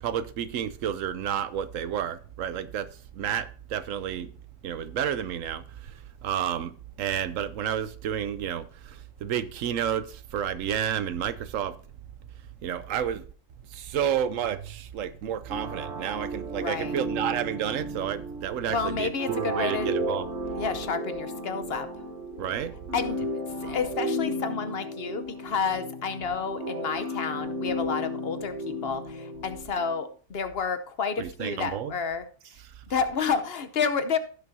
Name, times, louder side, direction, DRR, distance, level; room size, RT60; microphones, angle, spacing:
voice 1, 0.0-4.3 4.6-11.8 12.6-13.3 13.7-20.3 22.4-22.7 31.2-31.9 32.6-32.7, right 9 dB, 90° right, 1.1 m, -31 dB
sound 1, 15.5-30.0, equal, 65° right, 1.4 m, -34 dB
voice 2, 16.5-16.9 18.7-19.9 20.6-21.9 22.9-23.2 23.6-32.3 32.9-34.2, left 5 dB, 55° left, 1.0 m, -30 dB
15.5 x 6.6 x 2.7 m
omnidirectional pair, 1.3 m